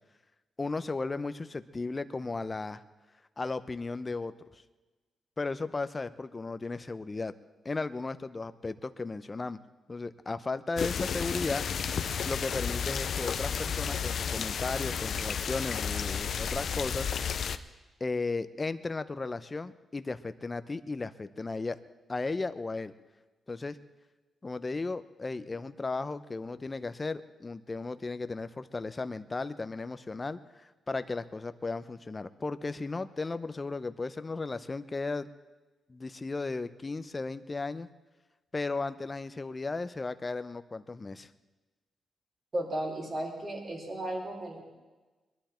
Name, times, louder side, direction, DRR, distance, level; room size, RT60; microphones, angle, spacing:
voice 1, 0.6-2.8 3.4-4.6 5.4-7.3 7.6-9.6 9.9-11.6 12.3-17.1 18.0-21.8 22.1-22.9 23.5-23.8 24.4-35.3 35.9-37.9 38.5-41.3, left 3 dB, 30° left, 13 dB, 0.7 m, -35 dB
sound 1, 10.8-17.6, left 7 dB, 65° left, 0.6 m, -32 dB
voice 2, 42.5-44.6, right 1 dB, 40° right, -1 dB, 4.3 m, -34 dB
21.5 x 11.5 x 4.4 m, 1.2 s
cardioid pair, 80°, 0 cm